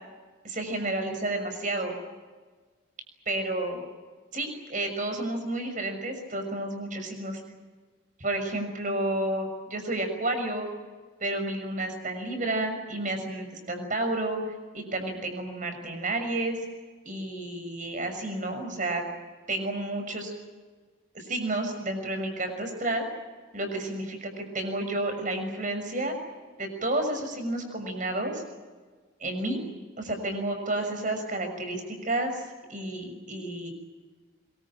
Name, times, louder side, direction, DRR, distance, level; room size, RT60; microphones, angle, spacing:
voice 1, 0.4-1.9 3.3-3.8 4.3-7.4 8.2-10.7 11.2-14.4 14.7-16.6 17.0-19.0 19.5-20.3 21.1-23.1 23.5-26.1 26.6-28.4 29.2-29.6 30.0-32.4 32.7-33.7, right 2 dB, 40° right, 6 dB, 6.4 m, -31 dB
25.5 x 23.0 x 8.9 m, 1.4 s
head